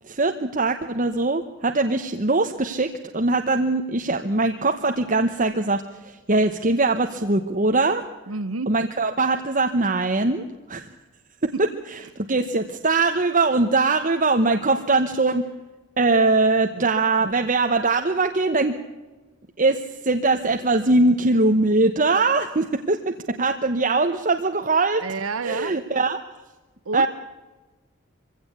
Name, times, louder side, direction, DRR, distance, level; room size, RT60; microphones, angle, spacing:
voice 1, 0.0-8.0 8.7-10.9 11.4-15.5 16.0-18.8 19.6-25.0 25.4-26.2 26.9-27.1, right 3 dB, 40° right, 6 dB, 1.1 m, -22 dB
voice 2, 8.3-8.7 16.7-16.9 17.2-17.3 25.0-25.7 26.9-27.1, right 4 dB, 85° right, 14 dB, 0.9 m, -29 dB
23.5 x 16.5 x 8.3 m, 1.2 s
head